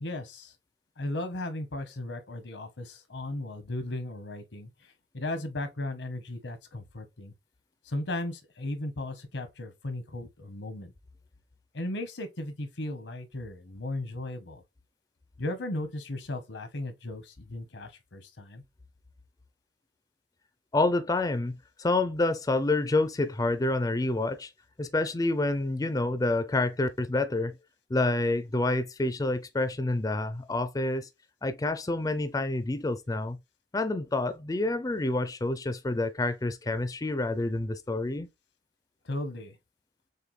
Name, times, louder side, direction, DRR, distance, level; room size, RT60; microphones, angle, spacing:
voice 1, 0.0-0.5 1.0-4.7 5.1-7.3 7.9-10.9 11.7-14.6 15.4-18.6 39.0-39.6, left 1 dB, 85° left, 1.0 m, -36 dB
voice 2, 20.7-24.5 24.8-27.5 27.9-31.1 31.4-33.4 33.7-38.3, left 2 dB, 20° left, 0.4 m, -28 dB
6.6 x 2.2 x 3.1 m
head